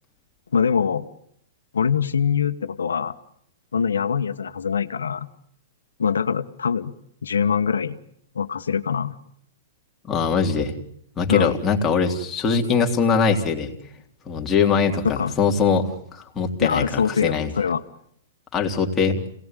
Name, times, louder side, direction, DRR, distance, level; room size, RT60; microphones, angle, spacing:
voice 1, 0.5-1.1 1.7-3.1 3.7-5.3 6.0-6.9 7.2-8.0 8.3-9.2 11.3-11.6 15.0-15.3 16.6-17.8, left 6 dB, 90° left, 9 dB, 1.4 m, -23 dB
voice 2, 10.1-10.7 11.2-13.7 14.2-17.5 18.5-19.1, left 5 dB, 20° left, 1 dB, 3.3 m, -22 dB
27.5 x 18.5 x 9.2 m, 0.71 s
hypercardioid pair, 130°, 0 cm